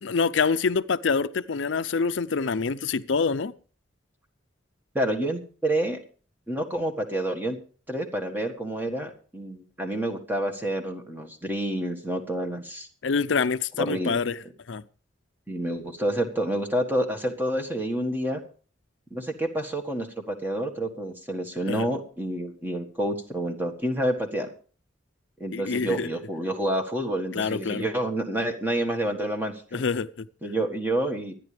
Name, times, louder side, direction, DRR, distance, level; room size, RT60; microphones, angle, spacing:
voice 1, 0.0-3.5 13.0-14.4 14.7-14.8 21.7-21.9 25.5-26.1 27.3-27.9 29.7-30.3, left 5 dB, 70° left, 0.5 m, -26 dB
voice 2, 4.9-6.0 6.5-7.6 7.9-12.9 13.8-14.1 15.5-18.4 19.1-24.5 25.4-29.8 30.4-31.3, right 1 dB, 10° right, 1.6 m, -28 dB
24.0 x 9.9 x 3.4 m
head